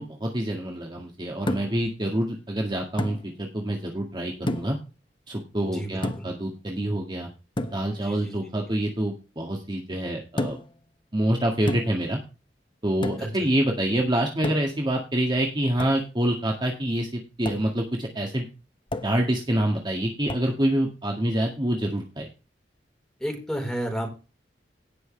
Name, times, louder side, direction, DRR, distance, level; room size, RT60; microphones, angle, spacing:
voice 1, 0.0-4.8 5.3-7.3 7.7-10.6 11.1-12.2 12.8-18.5 19.0-22.3, right 1 dB, 25° right, 1 dB, 1.8 m, -26 dB
sound 1, 1.5-1.9 3.0-3.2 4.5-4.9 6.0-6.4 7.6-7.9 10.4-10.8 11.7-12.1 13.0-13.4 14.4-14.9 15.8-16.0 17.5-17.7 18.9-19.2 20.3-20.6, left 1 dB, 30° left, 0.8 m, -31 dB
voice 2, 5.6-6.3 7.9-8.5 13.2-13.5 23.2-24.1, right 1 dB, 5° left, 1 dB, 4.3 m, -32 dB
17.5 x 6.3 x 3.3 m, 0.31 s
head